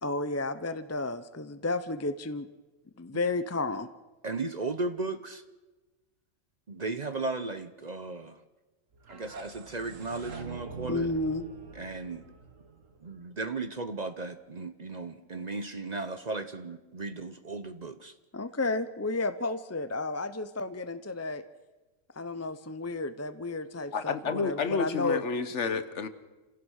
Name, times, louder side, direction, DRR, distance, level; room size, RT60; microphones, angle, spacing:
voice 1, 0.0-2.5 3.0-3.9 10.9-11.4 18.3-21.4 22.2-25.2, left 2 dB, 20° left, 12 dB, 0.4 m, -32 dB
voice 2, 4.2-5.4 6.7-8.4 9.1-11.1 11.8-12.2 13.0-18.1, right 3 dB, 40° right, 11 dB, 0.8 m, -35 dB
sound 1, 8.9-13.8, right 5 dB, 75° right, 1.9 m, -45 dB
voice 3, 23.9-26.1, left 5 dB, 65° left, 12 dB, 1.4 m, -30 dB
27.5 x 16.5 x 6.4 m, 1.2 s
omnidirectional pair, 1.3 m